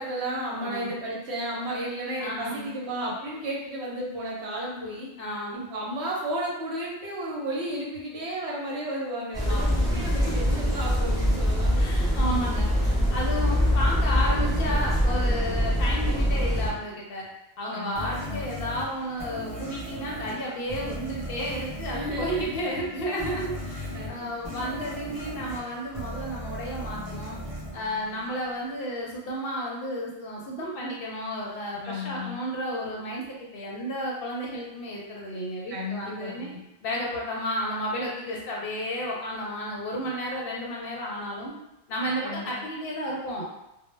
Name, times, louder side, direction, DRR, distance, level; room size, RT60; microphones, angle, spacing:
voice 1, 0.0-5.1 5.5-12.0 17.7-18.4 21.9-22.6 23.9-24.6 31.8-32.4 35.7-36.6 42.2-42.6, equal, 70° right, -3 dB, 0.9 m, -33 dB
voice 2, 0.6-0.9 2.2-2.7 5.2-5.7 9.5-10.6 11.8-17.2 17.6-27.4 27.7-36.5 36.8-41.5 41.9-43.4, equal, 65° left, -3 dB, 0.7 m, -32 dB
sound 1, 9.3-16.7, equal, 5° right, 0.7 m, -24 dB
sound 2, 17.9-28.7, equal, 40° right, 0.7 m, -37 dB
2.1 x 2.1 x 3.1 m, 0.90 s
omnidirectional pair, 1.2 m